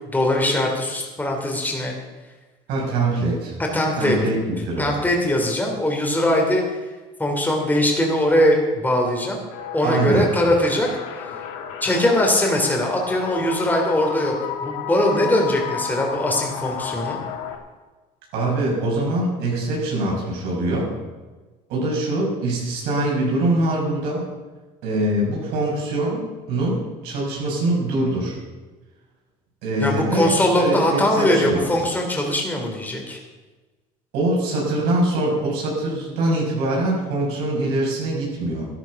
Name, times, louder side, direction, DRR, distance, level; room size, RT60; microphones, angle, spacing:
voice 1, 0.1-2.0 3.7-4.2 4.8-6.6 7.2-9.4 9.7-10.9 11.1-11.2 11.8-14.3 14.6-17.2 29.8-33.2, left 1 dB, 10° left, 0 dB, 3.2 m, -21 dB
voice 2, 2.7-3.5 4.0-4.9 9.8-10.3 18.3-20.9 21.7-24.3 24.8-26.2 26.5-28.4 29.6-31.7 34.1-38.7, right 1 dB, 80° right, -3 dB, 6.0 m, -23 dB
sound 1, 9.5-17.6, left 7 dB, 90° left, 1.8 m, -32 dB
12.0 x 12.0 x 6.0 m, 1.3 s
supercardioid pair, 95°, 16 cm